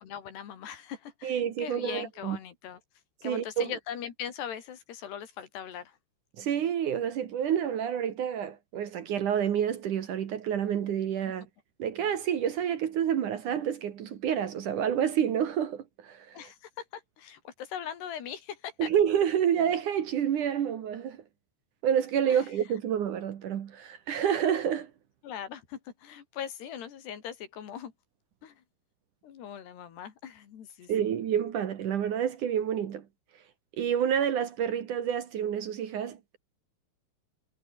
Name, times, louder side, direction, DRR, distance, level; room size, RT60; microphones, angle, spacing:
voice 1, 0.0-2.8 3.2-5.9 16.3-18.9 22.3-22.4 25.2-27.9 28.4-28.5 29.2-31.1, left 9 dB, 80° left, 4.9 m, -40 dB
voice 2, 1.2-2.4 3.2-3.7 6.4-11.4 11.8-16.5 18.8-21.2 21.8-24.9 30.9-33.0 33.8-36.4, right 9 dB, 60° right, 2.7 m, -28 dB
omnidirectional pair, 4.7 m